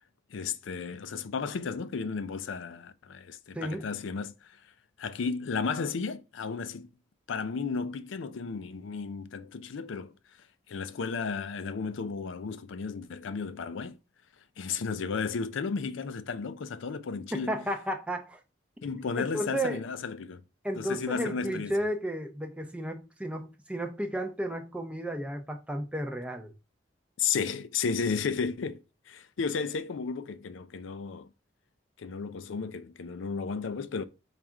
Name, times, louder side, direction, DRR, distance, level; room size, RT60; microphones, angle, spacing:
voice 1, 0.3-4.5 5.0-6.9 7.3-10.1 10.7-14.0 14.6-17.6 18.8-20.4 20.8-21.7 27.2-31.3 32.0-34.0, left 5 dB, 80° left, 0.4 m, -33 dB
voice 2, 3.5-3.8 17.3-18.4 19.2-19.8 20.6-26.5, right 1 dB, 5° right, 0.6 m, -33 dB
4.8 x 2.5 x 4.2 m
head